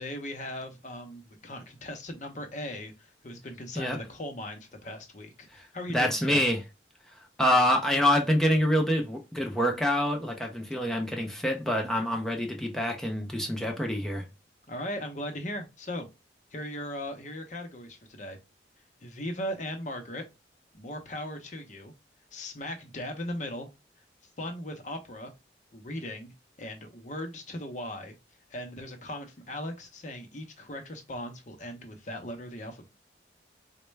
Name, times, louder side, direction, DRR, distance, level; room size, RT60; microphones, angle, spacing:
voice 1, 0.0-6.4 14.7-16.1 16.5-18.4 19.0-20.2 20.7-21.9 22.3-23.7 24.4-25.3 25.7-26.3 26.6-28.1 28.5-32.9, left 1 dB, 40° left, 0.7 m, -38 dB
voice 2, 5.9-6.6 7.1-14.3, left 1 dB, 5° left, 0.4 m, -26 dB
4.2 x 2.2 x 3.1 m
head